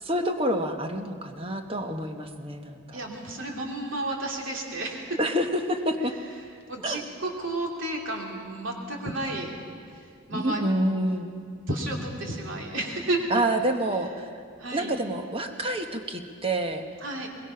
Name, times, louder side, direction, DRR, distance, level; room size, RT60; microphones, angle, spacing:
voice 1, 0.0-3.0 5.2-6.1 6.8-7.0 10.3-11.3 13.3-14.3 14.7-16.8, right 1 dB, 25° right, 5 dB, 1.1 m, -28 dB
voice 2, 2.9-5.2 6.7-9.5 10.3-10.6 11.7-13.2 14.6-14.9 17.0-17.3, right 2 dB, 60° right, 0 dB, 2.9 m, -32 dB
22.5 x 21.5 x 5.7 m, 2.3 s
head